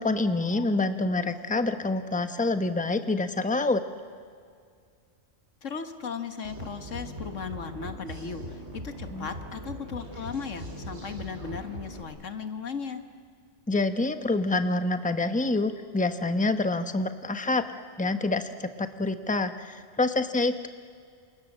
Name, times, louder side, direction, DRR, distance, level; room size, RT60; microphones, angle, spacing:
voice 1, 0.0-3.8 9.1-9.3 13.7-17.7 18.0-20.7, left 2 dB, 5° left, 9 dB, 1.0 m, -27 dB
voice 2, 5.6-13.0, left 6 dB, 85° left, 8 dB, 1.9 m, -37 dB
sound 1, 6.4-12.0, equal, 65° right, 3.9 m, -40 dB
28.5 x 28.0 x 7.5 m, 2.2 s
omnidirectional pair, 1.3 m